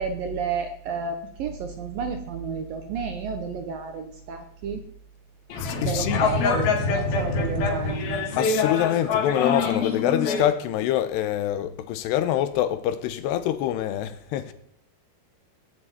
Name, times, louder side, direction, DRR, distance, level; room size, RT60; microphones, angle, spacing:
voice 1, 0.0-4.8 5.8-8.2, right 5 dB, 65° right, 2.5 m, -31 dB
sound 1, 5.5-10.4, left 4 dB, 65° left, 3.8 m, -25 dB
voice 2, 5.6-6.3 8.4-14.5, left 12 dB, 80° left, 2.9 m, -25 dB
18.0 x 7.8 x 9.1 m
omnidirectional pair, 5.1 m